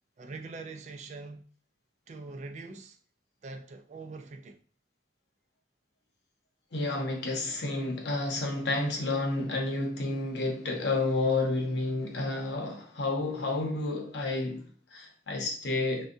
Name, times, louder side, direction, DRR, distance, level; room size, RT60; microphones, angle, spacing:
voice 1, 0.2-1.4 2.1-3.0 3.4-4.6, right 3 dB, 40° right, 0.3 m, -43 dB
voice 2, 6.7-16.1, left 2 dB, 75° left, 0.7 m, -30 dB
3.7 x 2.2 x 2.6 m
head